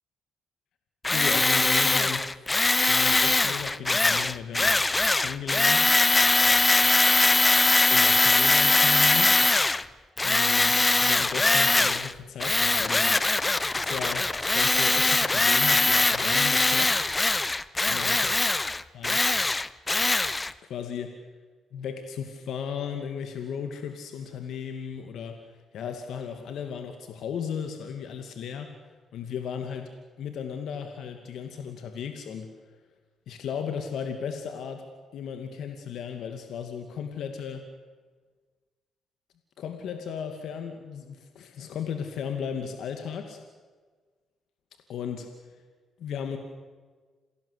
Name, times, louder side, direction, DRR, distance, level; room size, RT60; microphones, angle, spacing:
Tools, 1.0-9.8 10.2-12.1 12.4-20.5, left 2 dB, 20° left, 0.8 m, -22 dB
voice 1, 1.1-4.8 5.2-5.9 7.9-9.3 10.2-13.3 13.8-16.9 17.9-18.3 18.9-19.3 20.6-21.1 21.7-28.7 29.1-29.9 30.2-32.5 33.3-34.8 35.1-37.6 39.6-43.4 44.9-45.6 46.0-46.4, left 7 dB, 75° left, 6 dB, 2.5 m, -35 dB
28.0 x 19.0 x 8.3 m, 1.4 s
cardioid pair, 90°, 0 cm